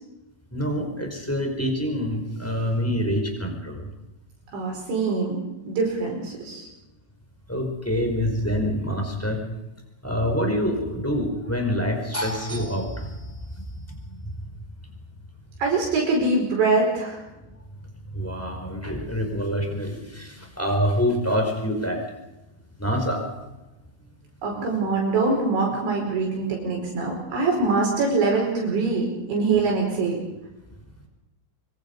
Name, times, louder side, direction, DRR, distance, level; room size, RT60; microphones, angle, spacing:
voice 1, 0.5-3.9 7.5-9.4 10.0-13.4 13.9-14.0 18.1-22.0 22.8-23.2, equal, 5° left, 3 dB, 4.2 m, -26 dB
voice 2, 4.5-5.4 5.7-6.7 15.6-17.2 24.4-30.2, right 3 dB, 65° right, -1 dB, 6.9 m, -23 dB
25.5 x 24.5 x 5.5 m, 1.0 s
omnidirectional pair, 5.7 m